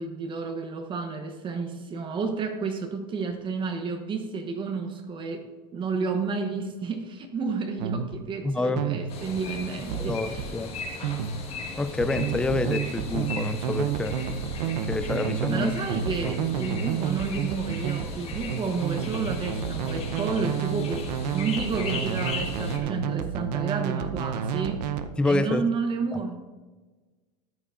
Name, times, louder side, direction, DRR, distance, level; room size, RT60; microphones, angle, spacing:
voice 1, 0.0-5.5 5.7-10.4 15.5-24.9 25.2-26.4, right 4 dB, 25° right, 5 dB, 0.9 m, -31 dB
sound 1, 7.8-8.2 8.8-9.2 9.9-10.6 11.0-11.5 12.0-25.1, right 8 dB, 75° right, 0.8 m, -30 dB
voice 2, 8.4-8.9 10.0-10.8 11.8-14.2 14.9-15.7 16.2-16.3 25.2-25.6, left 2 dB, 5° left, 11 dB, 0.3 m, -27 dB
sound 2, 9.1-22.8, left 4 dB, 30° left, 1.5 m, -37 dB
14.0 x 9.7 x 2.5 m, 1.3 s
supercardioid pair, 140°, 21 cm